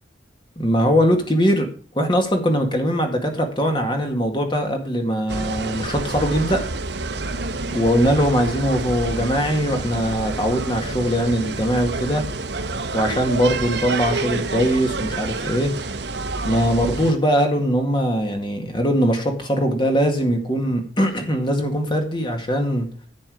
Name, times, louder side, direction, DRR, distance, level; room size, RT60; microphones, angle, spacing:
voice 1, 0.6-1.7 1.9-6.6 7.7-12.3 12.9-15.7 16.4-22.9, equal, 25° left, 4 dB, 2.0 m, -21 dB
sound 1, 5.3-17.1, right 3 dB, 80° right, 1.1 m, -28 dB
10.5 x 8.6 x 5.0 m, 0.41 s
head